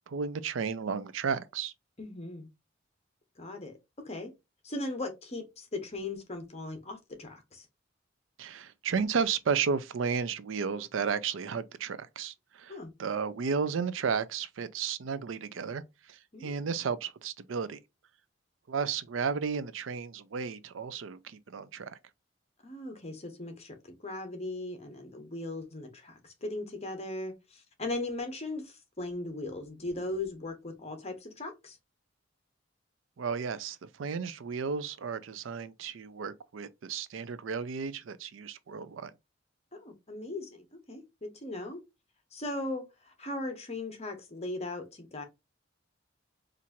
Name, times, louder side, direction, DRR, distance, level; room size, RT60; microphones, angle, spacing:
voice 1, 0.1-1.7 8.4-17.8 18.7-21.9 33.2-39.1, right 6 dB, 80° right, 0.5 m, -33 dB
voice 2, 2.0-2.5 3.4-4.3 4.6-7.6 12.7-12.9 16.3-16.5 22.6-31.8 39.7-41.8 42.3-45.2, left 2 dB, 35° left, 1.1 m, -38 dB
4.4 x 2.5 x 2.7 m
head